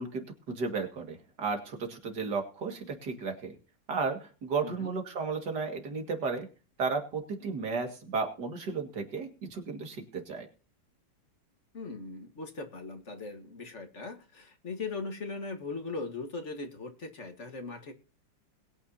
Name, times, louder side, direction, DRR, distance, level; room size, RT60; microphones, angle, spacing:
voice 1, 0.0-3.5 3.9-6.5 6.8-10.5, right 4 dB, 60° right, 4 dB, 2.6 m, -34 dB
voice 2, 4.6-4.9 11.7-17.9, left 3 dB, 40° left, 6 dB, 1.7 m, -39 dB
21.5 x 9.1 x 2.7 m, 0.35 s
omnidirectional pair, 2.1 m